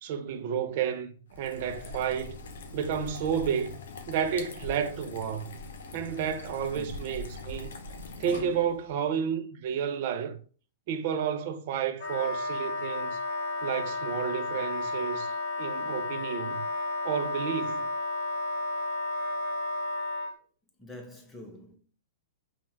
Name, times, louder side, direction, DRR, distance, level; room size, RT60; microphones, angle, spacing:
voice 1, 0.0-2.4 2.7-3.8 4.1-5.5 5.9-7.7 8.2-10.4 10.9-13.2 13.6-15.3 15.6-16.6 17.0-17.9, right 8 dB, 50° right, 0.6 m, -31 dB
sound 1, 1.3-8.9, left 3 dB, 70° left, 0.7 m, -42 dB
voice 2, 6.7-7.3 20.2-20.4 20.8-21.8, left 1 dB, 10° left, 1.0 m, -47 dB
Wind instrument woodwind instrument, 12.0-20.3, left 2 dB, 50° left, 1.1 m, -32 dB
5.4 x 2.4 x 2.9 m
hypercardioid pair, 110°, 0 cm